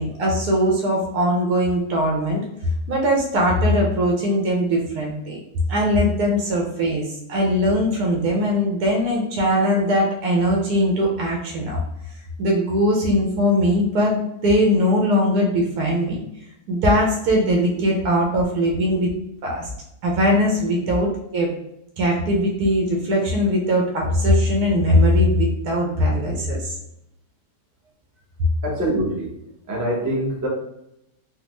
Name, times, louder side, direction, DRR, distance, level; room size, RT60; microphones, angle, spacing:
voice 1, 0.0-2.4 2.9-5.4 5.7-11.8 12.4-16.2 16.7-19.1 19.4-19.7 20.0-21.5 22.0-26.7, equal, 75° right, -1 dB, 1.2 m, -20 dB
voice 2, 28.6-29.3 29.7-30.5, right 1 dB, 20° right, -5 dB, 0.5 m, -24 dB
3.4 x 2.1 x 3.0 m, 0.81 s
omnidirectional pair, 1.7 m